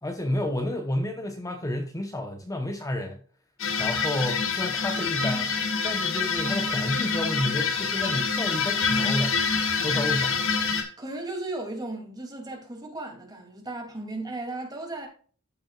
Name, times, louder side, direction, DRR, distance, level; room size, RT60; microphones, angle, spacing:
voice 1, 0.0-3.2 3.8-5.5 5.8-9.4 9.8-10.4, left 1 dB, 15° left, 1.0 m, -30 dB
sound 1, 3.6-10.8, left 5 dB, 60° left, 2.0 m, -26 dB
voice 2, 11.0-15.1, right 2 dB, 20° right, 2.9 m, -35 dB
14.5 x 6.1 x 2.4 m
head